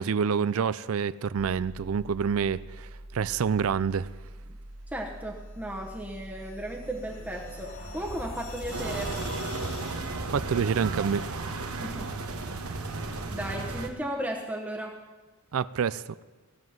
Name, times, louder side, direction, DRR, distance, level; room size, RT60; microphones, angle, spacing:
voice 1, 0.0-4.1 10.3-11.3 15.5-16.0, right 6 dB, 65° right, 17 dB, 0.4 m, -27 dB
sound 1, 1.4-9.4, right 1 dB, 30° right, 1.8 m, -45 dB
voice 2, 4.9-9.2 11.8-12.1 13.3-15.0, right 1 dB, 5° right, -2 dB, 1.0 m, -35 dB
sound 2, 5.8-10.3, left 2 dB, 65° left, 2.6 m, -44 dB
sound 3, 8.7-13.9, right 3 dB, 85° right, 1.2 m, -34 dB
16.5 x 7.3 x 7.9 m, 1.3 s
head